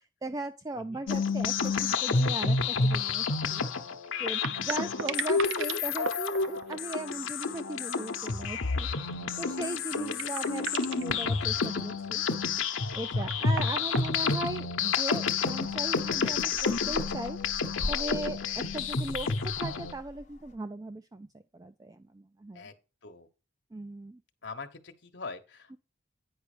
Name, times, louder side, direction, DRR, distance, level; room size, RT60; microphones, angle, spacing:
voice 1, 0.2-3.6 4.2-8.9 9.4-12.2 12.9-17.4 17.9-21.3 21.5-22.7 23.7-24.2 25.7-25.8, right 2 dB, 20° right, 0.3 m, -38 dB
sound 1, 1.1-19.9, left 5 dB, 80° left, 0.9 m, -30 dB
sound 2, 2.4-2.5 2.8-2.9 4.0-7.6 7.9-8.3 8.7-8.8 9.6-9.7 10.1-11.2 12.7-14.9 16.0-16.7, right 6 dB, 70° right, 0.8 m, -38 dB
voice 2, 4.5-4.9 9.9-10.1 13.2-13.7 22.5-22.7 23.0-23.3 24.4-25.8, left 4 dB, 60° left, 1.2 m, -44 dB
sound 3, 15.5-20.5, left 1 dB, 35° left, 1.1 m, -42 dB
9.7 x 5.3 x 5.0 m
head